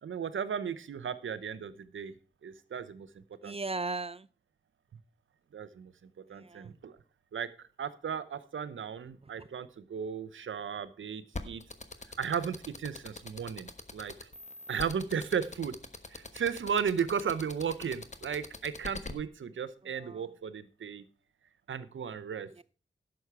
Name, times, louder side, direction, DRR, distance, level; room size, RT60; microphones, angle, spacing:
voice 1, 0.0-2.1 2.4-3.1 3.4-3.5 5.5-5.9 6.3-7.0 7.3-11.6 12.2-14.3 14.7-15.8 16.1-21.0 21.7-22.5, right 7 dB, 90° right, 0.7 m, -35 dB
voice 2, 3.4-4.3 6.3-6.7 9.2-9.5 19.8-20.3 22.5-22.6, right 3 dB, 30° right, 0.4 m, -38 dB
sound 1, 11.3-19.1, left 3 dB, 35° left, 1.2 m, -42 dB
11.0 x 7.2 x 4.7 m
cardioid pair, 45°, 20 cm